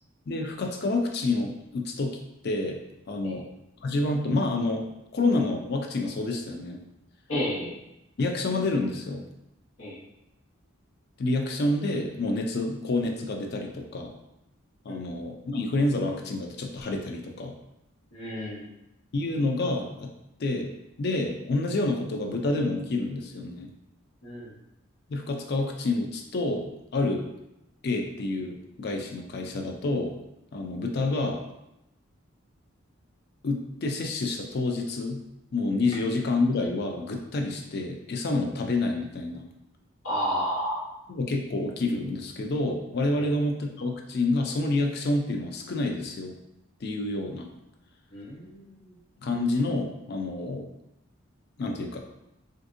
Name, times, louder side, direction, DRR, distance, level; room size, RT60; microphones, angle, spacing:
voice 1, 0.3-2.2 2.4-2.8 3.1-3.4 3.8-4.9 5.1-6.8 8.2-9.2 11.2-14.1 14.8-17.5 19.1-20.1 20.4-20.7 21.0-23.7 25.1-27.3 27.8-30.2 30.5-31.4 33.4-35.2 35.5-39.4 41.1-46.4 46.8-47.5 49.2-50.7 51.6-52.0, left 2 dB, 50° left, 3 dB, 0.4 m, -28 dB
voice 2, 7.3-7.8 9.8-10.0 14.9-15.0 18.1-18.7 24.2-24.5 40.0-40.9 43.2-43.3 48.1-48.9, equal, 85° left, -8 dB, 1.1 m, -31 dB
3.4 x 2.5 x 2.5 m, 0.87 s
head